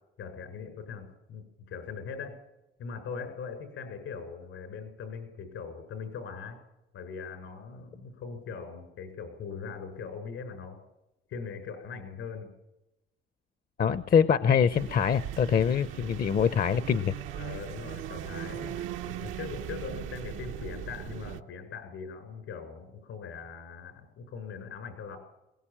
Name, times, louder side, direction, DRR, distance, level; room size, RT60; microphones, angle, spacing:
voice 1, 0.2-2.4 2.8-6.6 6.9-10.8 11.3-12.5 17.3-25.2, left 5 dB, 85° left, 7 dB, 6.6 m, -41 dB
voice 2, 13.8-17.1, left 7 dB, 50° left, 14 dB, 0.8 m, -24 dB
sound 1, 14.7-21.4, right 11 dB, 90° right, 1.0 m, -39 dB
22.0 x 18.5 x 8.9 m, 0.93 s
cardioid pair, 90°, 20 cm